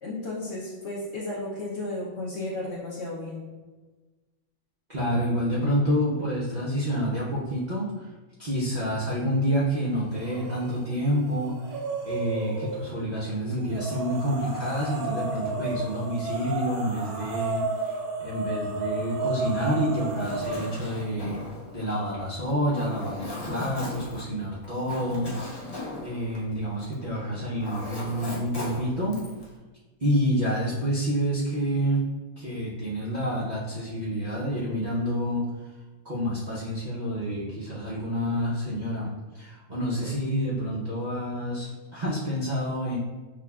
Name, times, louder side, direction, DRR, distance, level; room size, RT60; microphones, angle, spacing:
voice 1, 0.0-3.5, left 2 dB, 60° left, -4 dB, 0.7 m, -34 dB
voice 2, 4.9-8.1 8.4-21.4 21.7-25.3 26.0-29.2 30.0-32.0 32.4-35.5 36.0-43.0, equal, 55° right, -8 dB, 0.5 m, -28 dB
sound 1, 10.1-10.7 11.1-12.9 13.7-20.8, right 3 dB, 85° right, 1.1 m, -32 dB
Zipper (clothing), 19.9-27.1 27.3-29.5, left 2 dB, 35° left, 0.3 m, -38 dB
5.9 x 2.2 x 2.3 m, 1.3 s
omnidirectional pair, 1.6 m